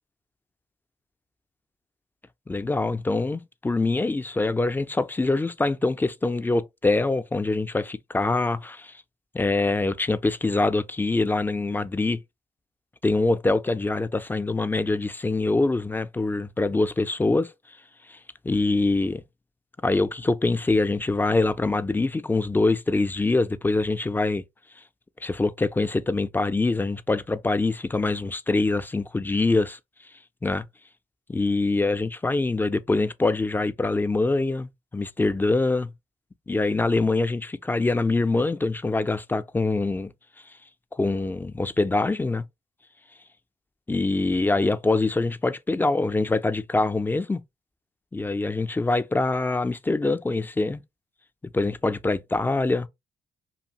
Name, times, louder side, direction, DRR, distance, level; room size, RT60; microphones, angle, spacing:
voice 1, 2.5-9.0 9.3-12.2 13.0-17.5 18.1-18.2 18.4-19.2 19.8-24.4 25.2-29.8 30.4-30.7 31.3-35.9 36.5-40.1 41.0-42.4 43.9-47.4 48.1-50.8 51.5-52.9, left 3 dB, 15° left, 0.3 m, -24 dB
2.6 x 2.5 x 2.8 m
supercardioid pair, 65°, 14 cm